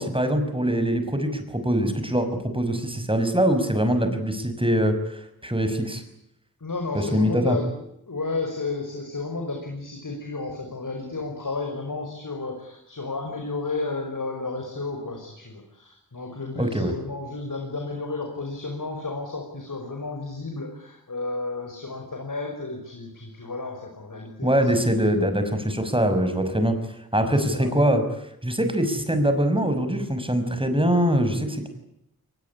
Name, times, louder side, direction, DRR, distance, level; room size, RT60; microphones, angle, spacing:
voice 1, 0.0-6.0 6.9-7.6 16.6-16.9 24.4-26.7 27.1-28.0 28.4-31.7, equal, 15° right, 8 dB, 6.0 m, -23 dB
voice 2, 6.6-7.7 8.1-24.5 27.2-27.7, left 3 dB, 60° left, 2 dB, 5.8 m, -32 dB
23.5 x 20.5 x 10.0 m, 0.78 s
wide cardioid pair, 60°, 36 cm